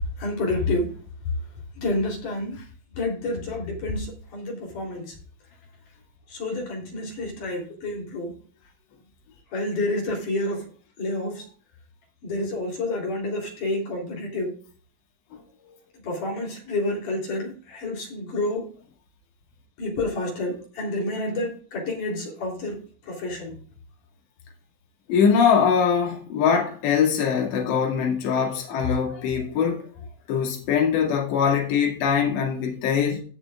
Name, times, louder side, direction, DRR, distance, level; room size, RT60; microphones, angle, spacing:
voice 1, 0.2-1.0 1.7-2.6 2.9-5.2 6.3-8.4 9.5-10.7 11.0-11.5 12.2-14.6 16.0-18.7 19.8-23.6, left 2 dB, 45° left, 4.5 m, -29 dB
voice 2, 25.1-29.9 30.3-33.2, left 7 dB, 65° left, 4.4 m, -22 dB
18.5 x 6.8 x 2.5 m
omnidirectional pair, 5.6 m